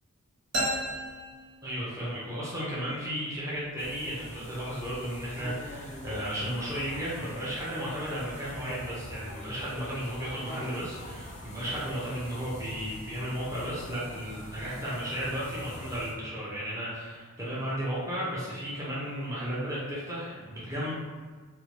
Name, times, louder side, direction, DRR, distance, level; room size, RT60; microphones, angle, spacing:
sound 1, 0.5-2.2, right 1 dB, 55° right, 0.7 m, -33 dB
voice 1, 1.6-20.9, equal, 15° right, -8 dB, 0.6 m, -34 dB
sound 2, 3.8-16.1, equal, 30° left, 0.4 m, -44 dB
2.7 x 2.2 x 2.9 m, 1.5 s
head